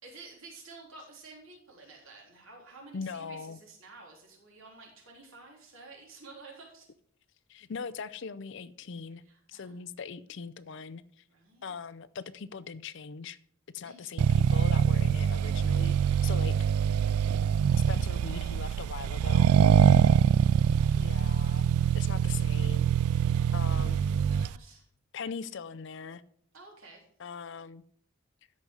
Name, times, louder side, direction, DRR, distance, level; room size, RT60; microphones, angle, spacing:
voice 1, 0.0-6.9 9.3-9.8 11.3-11.8 13.8-14.1 19.2-19.4 23.2-24.9 26.5-27.1, right 3 dB, 65° right, -1 dB, 3.6 m, -52 dB
voice 2, 2.9-3.6 7.5-9.2 9.5-11.0 11.6-13.4 13.7-16.0 16.2-16.5 17.7-19.5 20.9-21.7 21.9-23.2 23.5-24.0 25.1-26.2 27.2-27.8, left 5 dB, 55° left, 17 dB, 0.5 m, -40 dB
Accelerating revving vroom, 14.2-24.6, right 8 dB, 85° right, 0.3 m, -24 dB
13.0 x 5.3 x 4.7 m, 0.65 s
head